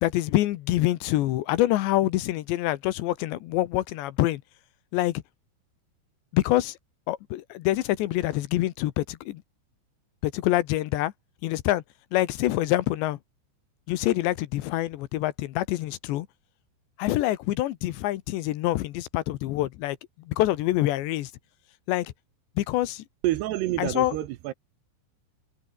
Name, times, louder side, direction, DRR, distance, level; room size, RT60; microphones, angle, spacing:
voice 1, 0.0-4.4 4.9-5.2 6.3-6.8 7.1-9.4 10.2-11.1 11.4-11.8 12.1-13.2 13.9-16.3 17.0-20.0 20.3-21.3 21.9-22.1 22.6-23.0 23.8-24.2, left 15 dB, 80° left, 3.1 m, -26 dB
voice 2, 23.2-24.5, right 15 dB, 75° right, 2.7 m, -28 dB
omnidirectional pair, 5.4 m